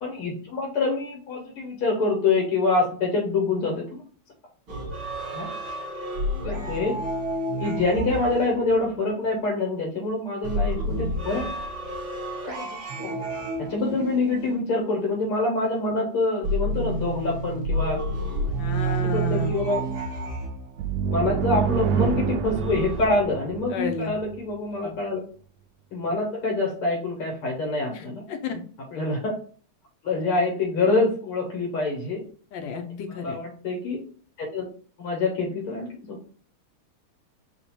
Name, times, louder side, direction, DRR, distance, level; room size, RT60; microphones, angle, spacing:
voice 1, 0.0-4.0 5.3-5.5 6.4-7.0 7.6-11.5 12.5-13.2 13.6-18.0 18.8-19.9 21.1-25.2 25.9-28.2 28.9-29.4 30.0-32.2 33.1-34.0 34.4-34.7 35.0-36.2, left 3 dB, 90° left, -1 dB, 2.3 m, -26 dB
sound 1, 4.7-9.3 10.4-15.2 16.4-21.1 22.4-23.1, right 1 dB, 45° right, 1.4 m, -30 dB
voice 2, 18.6-19.5 23.7-24.1 24.8-25.0 27.9-28.6 32.5-33.4, left 6 dB, 70° left, 5 dB, 1.4 m, -32 dB
sound 2, 20.8-24.4, right 7 dB, 75° right, 1.0 m, -27 dB
4.1 x 2.5 x 4.5 m, 0.44 s
omnidirectional pair, 2.3 m